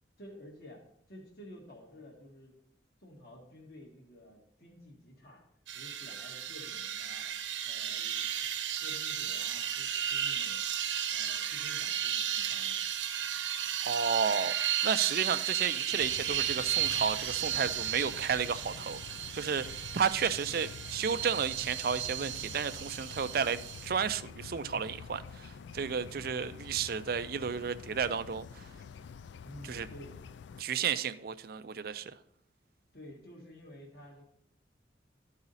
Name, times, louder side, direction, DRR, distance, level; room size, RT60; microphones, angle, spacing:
voice 1, 0.2-0.8 1.1-2.5 3.0-5.4 5.7-7.3 7.6-10.6 11.1-12.8 29.4-30.2 32.9-34.2, left 1 dB, 55° left, 1.6 m, -51 dB
sound 1, 5.7-23.9, right 10 dB, 80° right, 0.8 m, -34 dB
voice 2, 13.8-14.5 14.8-28.6 29.6-29.9 30.6-32.1, right 6 dB, 50° right, 0.4 m, -32 dB
sound 2, 16.0-30.6, left 6 dB, 75° left, 0.3 m, -48 dB
13.0 x 4.9 x 4.1 m
head